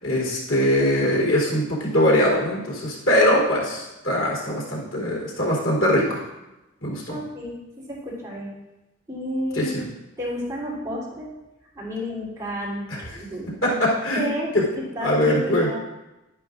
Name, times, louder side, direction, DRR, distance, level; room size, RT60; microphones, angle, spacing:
voice 1, 0.0-6.2 6.8-7.2 9.5-9.9 12.9-13.0 13.6-14.6 15.0-15.7, left 1 dB, 85° left, -4 dB, 3.6 m, -22 dB
voice 2, 7.1-8.5 9.1-9.7 10.2-11.3 11.7-13.7 14.1-15.8, equal, 15° right, -7 dB, 3.3 m, -31 dB
11.5 x 11.0 x 2.5 m, 0.99 s
head